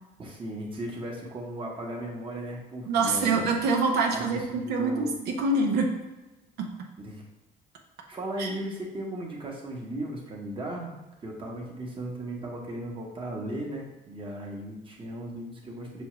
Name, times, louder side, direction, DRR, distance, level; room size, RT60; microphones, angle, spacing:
voice 1, 0.2-3.5 4.1-5.1 7.0-7.2 8.1-10.9 11.2-16.0, right 1 dB, 30° right, -1 dB, 1.0 m, -36 dB
voice 2, 2.9-5.9 6.6-6.7 8.4-8.5, right 3 dB, 80° right, 2 dB, 0.7 m, -25 dB
6.1 x 2.3 x 3.0 m, 1.1 s
cardioid pair, 110°, 17 cm